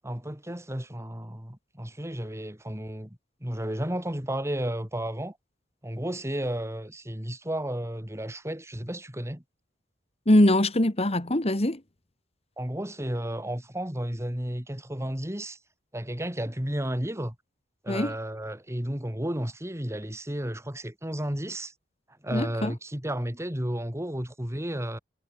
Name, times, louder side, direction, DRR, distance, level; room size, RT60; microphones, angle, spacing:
voice 1, 0.0-5.4 5.8-9.4 12.6-15.6 15.9-17.4 17.8-21.7 22.2-25.0, right 1 dB, 15° right, 2.8 m, -33 dB
voice 2, 10.3-11.8 17.9-18.1 22.3-22.7, left 1 dB, 35° left, 2.1 m, -22 dB
head